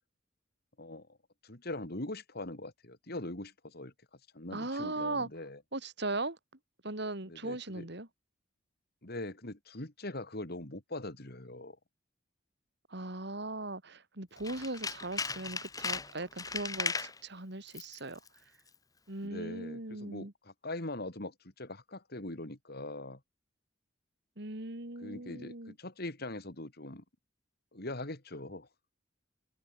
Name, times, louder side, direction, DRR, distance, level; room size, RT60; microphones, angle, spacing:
voice 1, 1.4-3.9 4.3-5.6 7.3-7.9 9.0-11.8 19.2-23.2 25.0-27.0 27.7-28.7, left 2 dB, 55° left, 3.4 m, -42 dB
voice 2, 4.5-5.3 5.7-6.4 6.8-8.1 12.9-18.2 19.1-20.3 24.4-25.7, right 2 dB, 60° right, 3.5 m, -38 dB
Tools, 14.4-17.2 17.7-18.0 18.3-18.4, left 4 dB, 20° left, 1.6 m, -36 dB
head